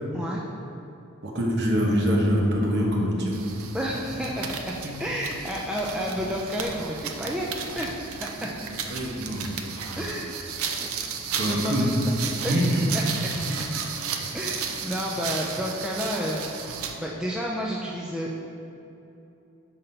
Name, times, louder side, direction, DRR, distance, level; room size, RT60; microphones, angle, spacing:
voice 1, 1.2-3.4 4.8-4.9 8.9-9.5 9.8-10.0 11.4-11.9 12.5-12.9, equal, 50° right, -2 dB, 1.0 m, -24 dB
sound 1, 3.3-17.0, right 6 dB, 70° right, 0.5 m, -34 dB
voice 2, 3.7-7.5 7.7-8.5 10.0-10.3 10.8-10.9 11.4-12.2 12.4-12.6 12.9-13.0 13.6-13.7 14.3-16.5 17.0-18.4, equal, 5° right, -3 dB, 0.3 m, -31 dB
5.7 x 4.1 x 5.3 m, 2.9 s
head